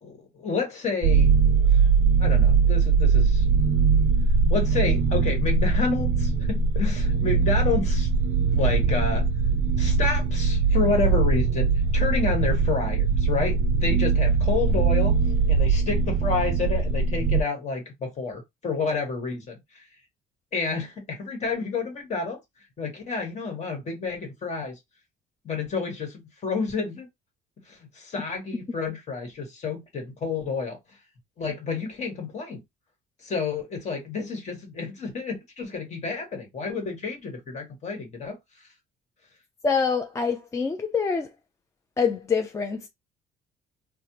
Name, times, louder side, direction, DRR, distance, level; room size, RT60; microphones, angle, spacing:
voice 1, 0.0-1.3 1.7-1.9 2.2-3.5 4.5-8.1 8.5-9.2 9.8-15.2 15.5-19.8 20.5-22.4 22.8-24.8 25.4-27.1 27.7-30.8 31.4-32.6 33.2-38.4, left 4 dB, 45° left, 1.3 m, -29 dB
sound 1, 1.0-17.4, right 5 dB, 50° right, 0.4 m, -21 dB
voice 2, 39.6-41.3 42.0-42.9, left 5 dB, 15° left, 0.3 m, -25 dB
3.3 x 2.1 x 2.9 m
cardioid pair, 110°, 17 cm